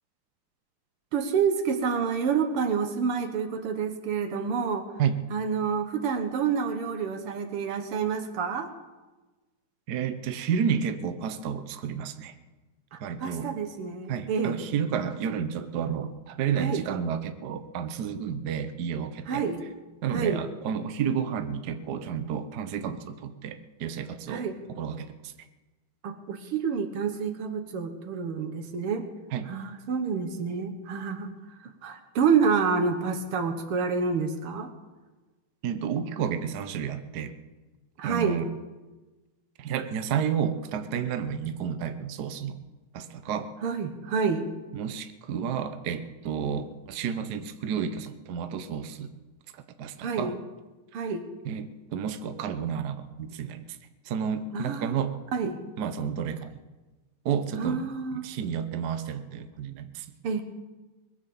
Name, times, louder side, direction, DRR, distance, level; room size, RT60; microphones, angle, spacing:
voice 1, 1.1-4.9 5.3-8.7 12.9-14.6 16.6-16.9 19.3-19.6 20.1-20.4 24.3-24.6 26.0-29.1 29.5-31.3 31.8-34.7 38.0-38.4 43.6-44.5 50.0-50.4 50.9-51.3 54.5-55.0 55.3-55.6 57.6-58.3 60.2-60.4, right 6 dB, 85° right, 7 dB, 2.2 m, -28 dB
voice 2, 9.9-12.3 13.0-13.5 14.1-19.4 20.0-24.5 24.8-25.3 29.3-29.5 35.6-37.3 38.0-38.5 39.6-42.6 42.9-43.5 44.7-49.1 49.5-50.4 51.4-53.6 54.1-55.1 55.8-56.5 57.2-57.8 58.2-60.1, right 7 dB, 60° right, 9 dB, 1.2 m, -31 dB
21.0 x 8.1 x 7.0 m, 1.2 s
omnidirectional pair, 2.4 m